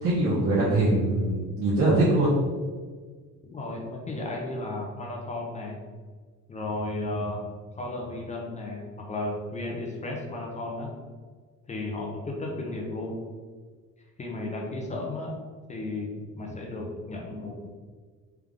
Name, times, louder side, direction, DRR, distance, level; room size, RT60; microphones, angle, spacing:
voice 1, 0.0-2.3, right 2 dB, 45° right, -8 dB, 1.1 m, -23 dB
voice 2, 3.5-5.8 6.5-7.4 7.8-10.9 11.7-13.2 14.2-15.3 15.7-16.1 16.4-17.7, left 2 dB, 25° left, 0 dB, 0.7 m, -34 dB
3.5 x 3.5 x 3.5 m, 1.5 s
cardioid pair, 135°, 31 cm